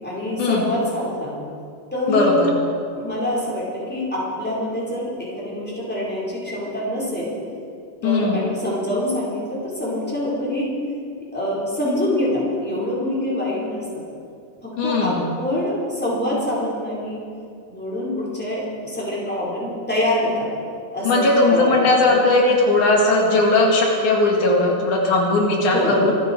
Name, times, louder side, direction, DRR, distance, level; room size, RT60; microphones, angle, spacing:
voice 1, 0.0-1.4 1.9-2.5 2.9-7.4 8.0-10.7 11.3-13.8 14.6-17.2 17.7-20.5 20.9-21.8 25.7-26.0, left 1 dB, 5° left, -7 dB, 4.8 m, -25 dB
voice 2, 2.1-2.5 8.0-8.4 14.8-15.2 21.1-26.1, left 2 dB, 85° left, -2 dB, 3.8 m, -18 dB
24.5 x 11.5 x 4.8 m, 2.4 s
omnidirectional pair, 3.4 m